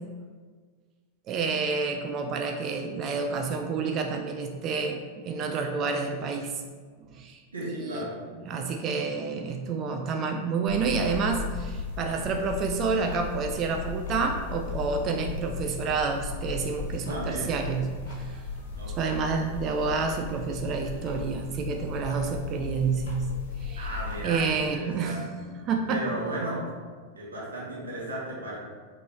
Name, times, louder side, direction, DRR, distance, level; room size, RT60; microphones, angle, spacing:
voice 1, 1.3-6.5 7.1-7.4 7.7-8.0 8.4-18.4 19.0-23.3 23.6-23.9 24.2-25.2 25.7-26.1, right 4 dB, 35° right, 4 dB, 0.4 m, -29 dB
voice 2, 7.5-8.1 17.1-17.5 18.8-19.1 23.7-25.2 25.9-26.6 27.1-28.6, right 1 dB, 70° right, -5 dB, 1.1 m, -35 dB
sound 1, 10.7-24.4, left 4 dB, 65° left, 0.8 m, -36 dB
5.0 x 3.2 x 3.2 m, 1.5 s
figure-of-eight pair, 90°, 0 cm